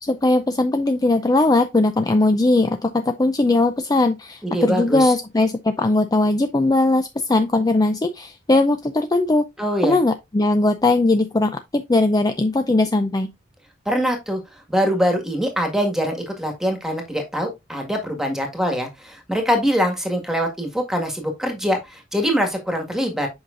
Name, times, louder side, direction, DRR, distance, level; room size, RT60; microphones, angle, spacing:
voice 1, 0.0-9.4 9.8-13.3, left 2 dB, 20° left, 0.5 m, -19 dB
voice 2, 4.4-5.1 9.6-10.0 13.9-14.4 14.7-23.3, equal, 5° right, 1.8 m, -23 dB
7.8 x 5.6 x 2.6 m
head